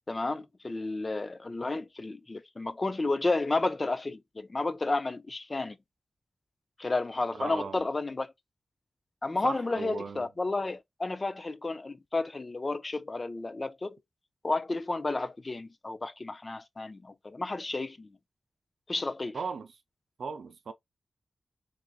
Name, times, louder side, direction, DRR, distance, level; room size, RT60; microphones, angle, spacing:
voice 1, 0.1-5.8 6.8-8.3 9.2-14.0 14.4-18.1 18.9-19.4, left 2 dB, 30° left, 0.3 m, -32 dB
voice 2, 7.3-7.8 9.4-10.3 19.3-19.7 20.2-20.7, right 5 dB, 80° right, 0.5 m, -37 dB
3.8 x 2.4 x 2.3 m
wide cardioid pair, 175°, 0 cm